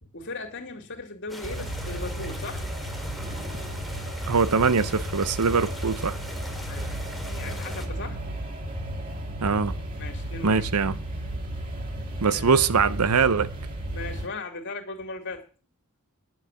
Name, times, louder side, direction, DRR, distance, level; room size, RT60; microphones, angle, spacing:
voice 1, 0.0-2.6 6.7-8.2 10.0-10.6 12.3-12.6 13.9-15.4, left 3 dB, 55° left, 2.7 m, -38 dB
sound 1, 1.3-7.9, equal, ahead, 1.9 m, -42 dB
sound 2, 1.4-14.3, right 1 dB, 40° right, 2.2 m, -34 dB
voice 2, 4.3-6.2 9.4-9.7 10.4-11.0 12.2-13.5, right 5 dB, 90° right, 0.8 m, -22 dB
11.0 x 7.4 x 8.2 m
head